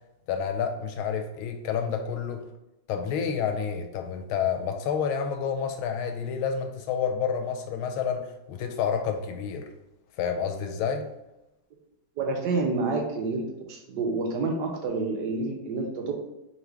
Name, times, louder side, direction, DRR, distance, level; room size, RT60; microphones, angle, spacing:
voice 1, 0.3-2.4 2.9-9.7 10.2-11.1, left 7 dB, 85° left, 5 dB, 1.4 m, -29 dB
voice 2, 12.2-13.4 13.7-16.1, right 3 dB, 70° right, 1 dB, 1.1 m, -28 dB
3.8 x 3.0 x 3.2 m, 0.92 s
omnidirectional pair, 2.2 m